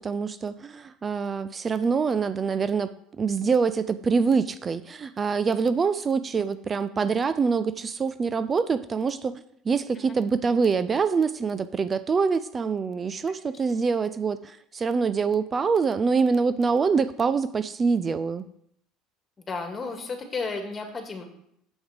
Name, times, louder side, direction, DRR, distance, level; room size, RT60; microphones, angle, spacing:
voice 1, 0.0-18.4, right 5 dB, 30° right, 14 dB, 0.4 m, -25 dB
voice 2, 19.4-21.2, left 4 dB, 30° left, 4 dB, 2.1 m, -33 dB
7.2 x 7.0 x 5.0 m, 0.72 s
supercardioid pair, 85°, 0 cm